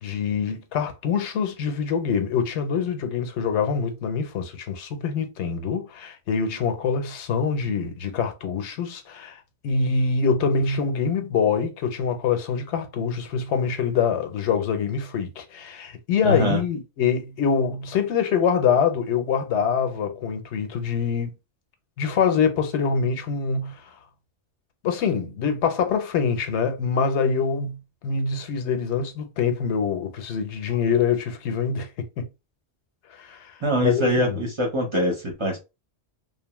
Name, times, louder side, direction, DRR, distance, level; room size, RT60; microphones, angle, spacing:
voice 1, 0.0-21.3 22.0-23.8 24.8-27.8 28.0-31.9 32.2-32.3 33.2-33.5 33.8-34.4, left 6 dB, 85° left, 0.9 m, -25 dB
voice 2, 16.2-16.6 33.6-35.6, equal, 35° right, 0.6 m, -23 dB
2.8 x 2.0 x 2.9 m
omnidirectional pair, 1.1 m